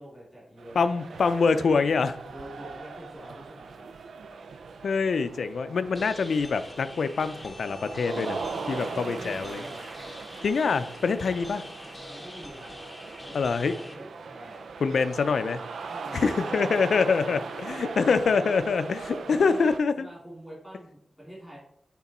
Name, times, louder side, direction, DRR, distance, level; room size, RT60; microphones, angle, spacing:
voice 1, 0.0-0.9 2.3-3.9 5.5-6.1 8.6-9.9 11.0-11.4 12.0-12.7 13.3-14.6 15.8-18.4 19.2-21.6, equal, ahead, -6 dB, 2.8 m, -45 dB
sound 1, 0.6-19.8, right 4 dB, 85° right, 0.4 m, -39 dB
voice 2, 0.8-2.2 4.8-8.4 8.7-9.6 10.4-11.6 13.3-13.7 14.8-15.6 16.1-20.1, left 5 dB, 70° left, 11 dB, 0.5 m, -25 dB
sound 2, 5.9-13.9, left 1 dB, 15° left, 0.9 m, -44 dB
8.2 x 3.7 x 4.2 m, 0.68 s
wide cardioid pair, 140°, 0 cm